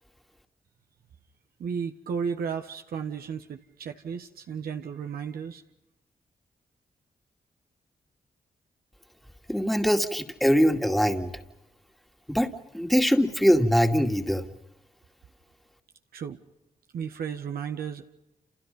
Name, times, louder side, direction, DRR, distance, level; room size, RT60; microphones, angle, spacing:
voice 1, 1.6-5.6 16.1-16.4 16.9-18.0, right 6 dB, 90° right, 5 dB, 1.3 m, -34 dB
voice 2, 9.5-11.3 12.3-14.4, equal, ahead, 5 dB, 2.3 m, -22 dB
29.0 x 28.0 x 5.4 m, 0.92 s
cardioid pair, 60°, 15 cm